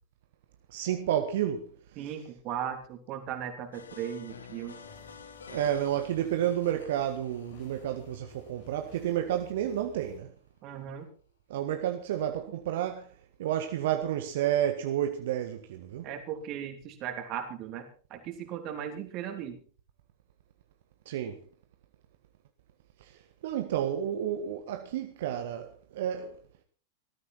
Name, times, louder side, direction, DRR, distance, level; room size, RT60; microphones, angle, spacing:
voice 1, 0.7-1.7 2.0-2.1 5.5-10.3 11.5-16.1 21.0-21.4 23.0-26.4, right 11 dB, 55° right, 1.5 m, -31 dB
voice 2, 2.0-4.8 10.6-11.1 16.0-19.6, right 9 dB, 40° right, 3.2 m, -37 dB
sound 1, 3.7-9.5, left 6 dB, 70° left, 2.1 m, -50 dB
sound 2, 4.8-10.2, left 4 dB, 40° left, 5.4 m, -55 dB
19.5 x 13.5 x 4.3 m
figure-of-eight pair, 90°, 0 cm